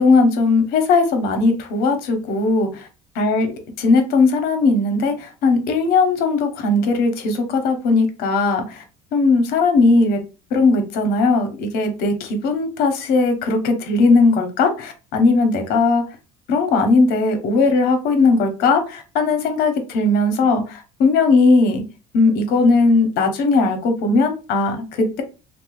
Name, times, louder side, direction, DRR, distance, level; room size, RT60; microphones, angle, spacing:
voice 1, 0.0-2.7 3.2-3.5 3.8-8.8 9.1-10.2 10.5-16.0 16.5-21.8 22.1-25.2, left 3 dB, 70° left, 6 dB, 0.8 m, -18 dB
2.6 x 2.1 x 3.0 m, 0.31 s
cardioid pair, 115°, 16 cm